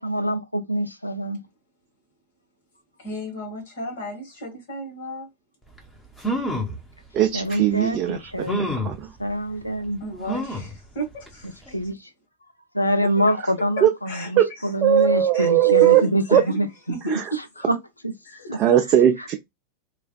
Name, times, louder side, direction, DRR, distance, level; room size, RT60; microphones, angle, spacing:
voice 1, 0.0-1.4 7.3-8.6 9.2-10.3 11.7-12.1 12.7-16.7 17.7-17.8 18.0-18.1 18.5-18.6 19.2-19.4, equal, 85° left, 0.4 m, -25 dB
voice 2, 3.0-5.3 9.5-9.6 10.0-11.7 13.0-13.3 13.8-14.7 15.3-17.4 18.2-18.5, right 2 dB, 55° left, 1.6 m, -34 dB
sound 1, 5.8-5.9 6.2-6.8 7.5-7.6 8.5-9.0 10.3-10.7 11.3-11.4 11.7-11.8, equal, 5° left, 1.1 m, -27 dB
voice 3, 7.1-9.0 13.8-13.9 14.4-14.5 14.8-16.0 16.3-16.4 17.1-17.2 18.5-19.4, right 11 dB, 35° right, 0.4 m, -19 dB
3.2 x 2.4 x 2.2 m
figure-of-eight pair, 90°, 0 cm